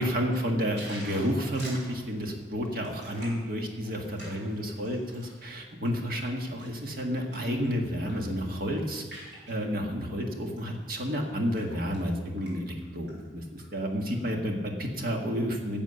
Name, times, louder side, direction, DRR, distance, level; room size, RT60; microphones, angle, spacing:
voice 1, 0.0-9.0 9.5-15.8, equal, 55° right, 2 dB, 1.7 m, -31 dB
sound 1, 0.7-5.4 5.9-7.6 7.9-8.3 8.5-9.6 10.4-10.6 11.0-12.1 12.4-12.5 12.8-13.6 14.1-14.2, right 1 dB, 80° right, 3.8 m, -47 dB
10.5 x 7.3 x 7.0 m, 1.5 s
head